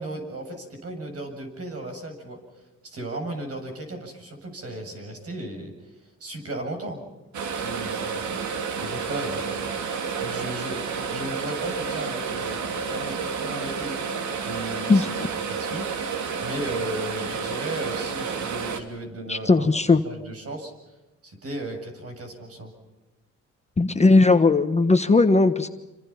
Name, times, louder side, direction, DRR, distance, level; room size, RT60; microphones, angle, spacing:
voice 1, 0.0-5.7 6.2-7.0 7.5-9.8 10.2-13.9 14.4-15.1 15.5-15.9 16.4-20.7 21.2-22.7, right 1 dB, 50° right, 4 dB, 7.8 m, -35 dB
sound 1, 7.3-18.8, right 5 dB, 70° right, 3.0 m, -30 dB
voice 2, 14.9-15.3 19.3-20.0 23.8-25.7, left 3 dB, 20° left, 8 dB, 1.3 m, -18 dB
28.5 x 26.0 x 5.9 m, 1.1 s
cardioid pair, 90°, 30 cm